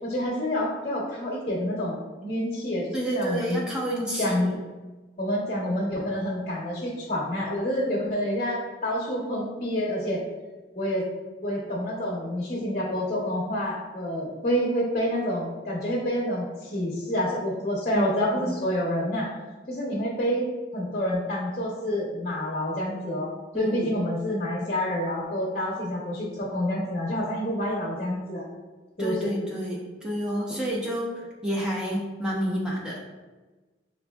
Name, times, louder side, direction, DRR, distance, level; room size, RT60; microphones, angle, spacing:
voice 1, 0.0-3.7 4.2-4.5 5.2-10.2 10.8-11.0 11.4-19.3 19.7-28.4 29.0-29.1, equal, 35° left, -5 dB, 0.7 m, -28 dB
voice 2, 2.9-4.6 17.9-18.6 23.5-23.9 29.0-33.0, equal, 5° right, -5 dB, 0.6 m, -29 dB
6.0 x 2.5 x 2.3 m, 1.2 s
head